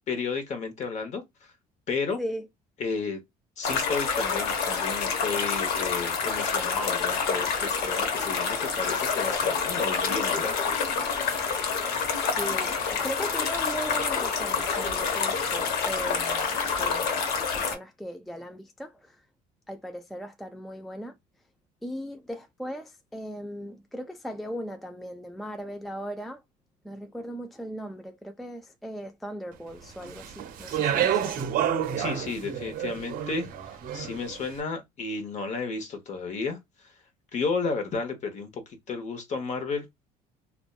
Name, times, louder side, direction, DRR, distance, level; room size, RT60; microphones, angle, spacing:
voice 1, 0.1-1.5 1.9-2.2 2.8-3.2 3.6-10.6 32.0-33.5 33.9-36.9 37.3-39.9, left 4 dB, 45° left, 0.9 m, -32 dB
sound 1, 3.6-17.8, left 5 dB, 75° left, 0.8 m, -27 dB
voice 2, 12.3-19.2 19.7-21.1 21.8-26.4 26.8-31.5, equal, ahead, 0.3 m, -38 dB
Speech, 30.0-34.4, right 9 dB, 60° right, 0.6 m, -29 dB
2.5 x 2.1 x 2.3 m
supercardioid pair, 95°, 16 cm